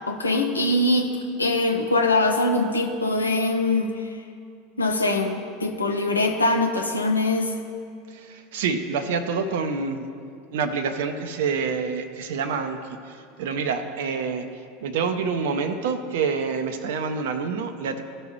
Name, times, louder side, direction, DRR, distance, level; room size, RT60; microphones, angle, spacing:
voice 1, 0.1-1.1 1.4-4.1 4.8-7.5, left 2 dB, 80° left, 3 dB, 0.8 m, -22 dB
voice 2, 8.1-10.1 10.5-18.0, right 5 dB, 55° right, 8 dB, 0.5 m, -27 dB
15.5 x 5.5 x 3.0 m, 2.3 s
figure-of-eight pair, 80°, 0 cm